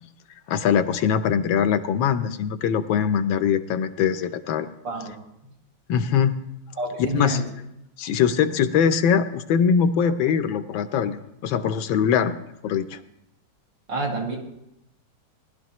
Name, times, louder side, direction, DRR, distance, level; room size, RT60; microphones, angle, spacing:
voice 1, 0.5-4.7 5.9-6.4 7.1-7.4 8.0-12.3 12.6-13.0, left 7 dB, 80° left, 10 dB, 1.4 m, -22 dB
voice 2, 6.8-7.5 13.9-14.4, right 1 dB, 70° right, -2 dB, 2.8 m, -27 dB
19.0 x 11.5 x 3.0 m, 0.82 s
omnidirectional pair, 2.1 m